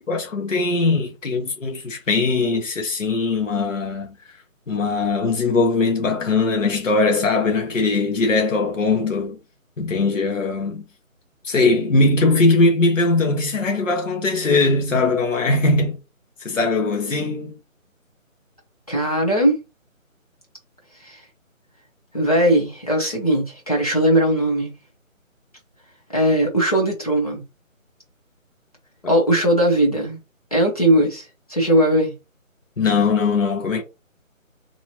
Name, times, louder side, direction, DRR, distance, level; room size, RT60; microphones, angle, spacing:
voice 1, 0.1-4.1 4.7-9.4 9.8-10.8 11.4-16.0 16.4-17.6 29.0-29.1 32.8-33.8, left 3 dB, 65° left, 1.2 m, -20 dB
voice 2, 18.9-19.6 21.0-21.2 22.1-24.7 26.1-27.4 29.1-30.2 30.5-32.1, right 1 dB, 25° left, 1.0 m, -19 dB
3.3 x 2.9 x 2.9 m
figure-of-eight pair, 175°, 41 cm